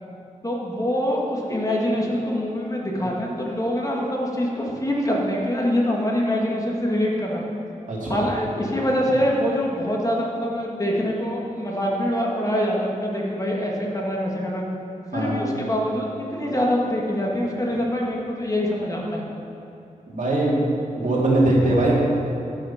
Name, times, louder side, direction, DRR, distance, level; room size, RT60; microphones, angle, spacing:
voice 1, 0.4-7.4 8.1-14.6 15.1-19.2, equal, 25° left, -2 dB, 1.9 m, -24 dB
voice 2, 7.9-8.2 15.1-15.3 20.1-20.6 20.9-22.0, right 1 dB, 65° right, -5 dB, 2.8 m, -21 dB
13.5 x 6.5 x 5.8 m, 2.8 s
wide cardioid pair, 90°, 14 cm